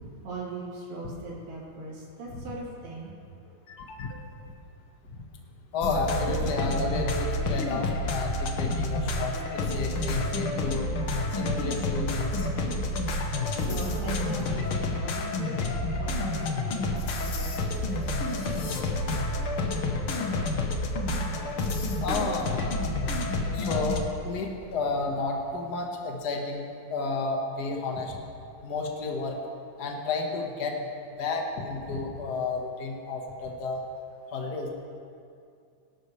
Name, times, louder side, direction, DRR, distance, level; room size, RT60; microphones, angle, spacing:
voice 1, 0.2-3.1 12.7-12.9 13.6-18.9, right 2 dB, 70° right, -6 dB, 4.9 m, -40 dB
voice 2, 3.7-4.2 5.1-5.2 5.7-10.9 11.3-12.5 21.9-23.2 23.5-26.6 26.9-28.2 28.6-29.4 29.8-30.9 31.2-33.8 34.3-34.7, left 3 dB, 45° left, 0 dB, 1.3 m, -32 dB
sound 1, 5.8-24.0, left 2 dB, 70° left, 1.3 m, -29 dB
22.5 x 12.5 x 3.3 m, 2.4 s
omnidirectional pair, 4.0 m